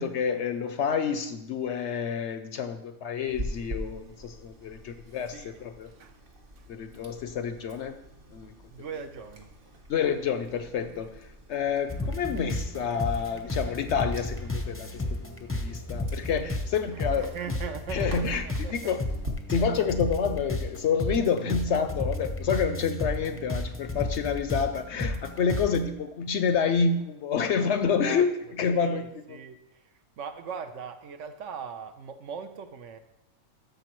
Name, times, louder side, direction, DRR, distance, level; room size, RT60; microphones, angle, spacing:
voice 1, 0.0-5.9 6.7-8.0 8.3-8.5 9.9-17.3 17.9-18.4 18.7-19.0 19.5-28.3 28.6-29.4, left 6 dB, 65° left, 0.8 m, -28 dB
Chewing mastication, 3.3-19.3, equal, 40° right, 1.2 m, -44 dB
voice 2, 5.3-5.6 5.9-6.2 6.6-6.7 8.7-9.5 13.1-13.2 16.9-18.9 27.8-28.2 28.7-33.0, right 6 dB, 65° right, 1.0 m, -40 dB
sound 1, 11.9-25.8, left 2 dB, 15° left, 0.5 m, -33 dB
12.5 x 6.8 x 3.0 m
omnidirectional pair, 1.5 m